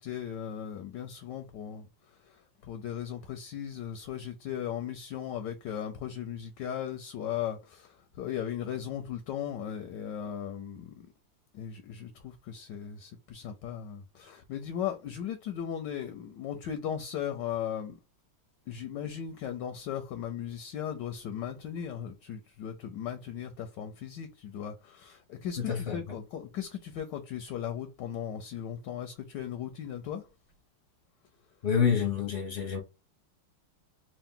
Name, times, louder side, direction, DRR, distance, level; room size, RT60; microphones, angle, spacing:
voice 1, 0.0-11.1 11.5-18.0 18.7-30.3, left 9 dB, 75° left, 1.0 m, -37 dB
voice 2, 25.7-26.0 31.6-32.8, left 7 dB, 50° left, 0.7 m, -27 dB
3.7 x 2.5 x 3.7 m
omnidirectional pair, 2.4 m